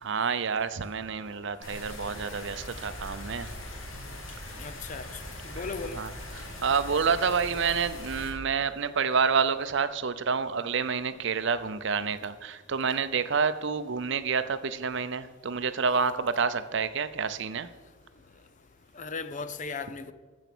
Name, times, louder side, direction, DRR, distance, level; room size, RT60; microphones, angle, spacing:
voice 1, 0.0-3.5 5.9-6.1 6.6-17.7, right 5 dB, 60° right, 0.6 m, -28 dB
sound 1, 1.6-8.3, left 1 dB, 70° left, 2.4 m, -41 dB
voice 2, 4.6-5.2 5.4-6.0 18.9-20.1, left 4 dB, 35° left, 0.6 m, -37 dB
13.5 x 7.3 x 6.1 m
head